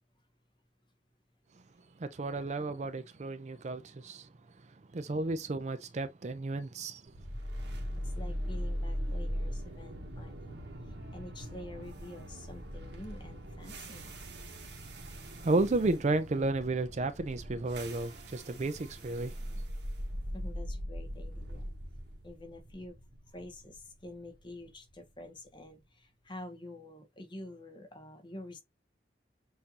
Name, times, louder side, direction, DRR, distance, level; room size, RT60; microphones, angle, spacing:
voice 1, 2.0-4.3 4.9-7.1 15.2-19.6, right 2 dB, 40° right, 0.4 m, -33 dB
sound 1, 7.1-25.2, equal, 75° right, 1.1 m, -40 dB
voice 2, 8.0-14.1 20.3-21.7 22.2-23.0 23.3-28.6, left 1 dB, 25° left, 1.0 m, -48 dB
6.5 x 2.7 x 2.8 m
head